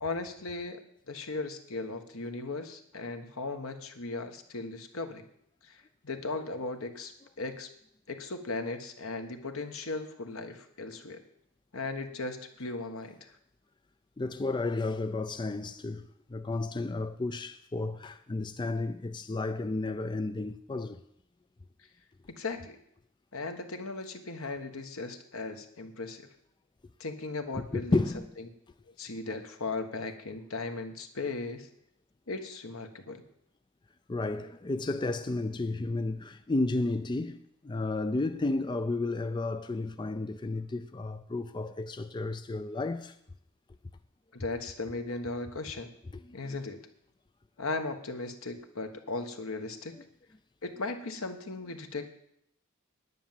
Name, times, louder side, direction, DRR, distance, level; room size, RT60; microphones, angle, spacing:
voice 1, 0.0-0.8 1.1-5.3 5.6-7.7 8.1-11.2 11.7-13.3 22.4-22.8 23.3-26.3 27.0-28.0 29.0-31.7 32.3-33.2 44.3-45.9 46.3-46.8 47.6-49.9 50.6-52.1, left 3 dB, 75° left, 1.4 m, -37 dB
voice 2, 14.2-16.0 16.3-21.0 27.5-28.3 34.1-43.1 46.3-46.4, left 2 dB, 20° left, 0.4 m, -32 dB
10.0 x 9.4 x 7.5 m
head